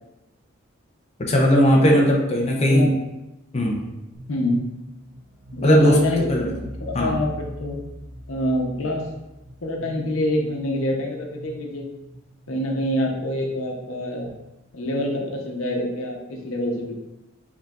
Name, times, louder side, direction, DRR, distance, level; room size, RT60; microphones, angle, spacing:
voice 1, 1.2-2.9 3.5-3.8 5.6-6.0 6.3-6.4 6.9-7.1, equal, 30° left, -1 dB, 0.6 m, -17 dB
voice 2, 2.5-2.9 4.3-4.6 5.5-7.8 8.3-9.1 9.6-11.8 12.5-14.3 14.7-16.9, left 1 dB, 90° left, 0 dB, 0.8 m, -26 dB
sound 1, 4.1-14.3, left 1 dB, 35° right, 1.1 m, -41 dB
4.8 x 3.9 x 2.4 m, 0.95 s
head